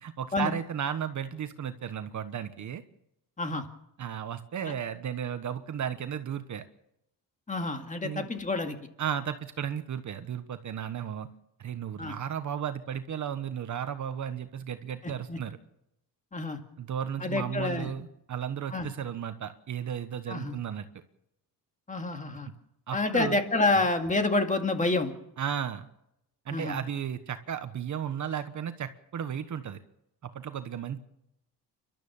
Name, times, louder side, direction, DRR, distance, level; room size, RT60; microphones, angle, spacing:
voice 1, 0.0-2.8 4.0-6.6 8.0-8.3 9.0-11.3 11.6-15.6 16.8-20.9 22.9-23.4 25.4-25.9 26.4-29.8 30.2-31.0, right 8 dB, 45° right, 10 dB, 1.3 m, -34 dB
voice 2, 7.5-8.8 12.0-12.2 15.3-15.4 16.3-16.6 17.2-17.9 18.7-18.9 20.3-20.6 21.9-22.5 22.9-25.1 26.5-26.8, left 2 dB, 20° left, 6 dB, 2.1 m, -28 dB
30.0 x 12.5 x 7.1 m, 0.82 s
cardioid pair, 150°, 41 cm